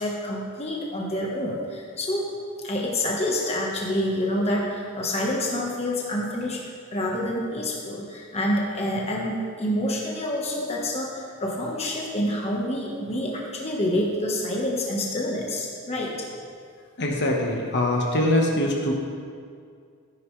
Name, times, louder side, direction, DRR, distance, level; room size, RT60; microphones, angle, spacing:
voice 1, 0.0-2.3 2.6-6.6 6.9-16.1, left 1 dB, 30° left, -2 dB, 1.3 m, -27 dB
voice 2, 17.0-18.9, left 1 dB, 50° left, 0 dB, 1.4 m, -23 dB
13.5 x 10.0 x 3.3 m, 2.2 s
head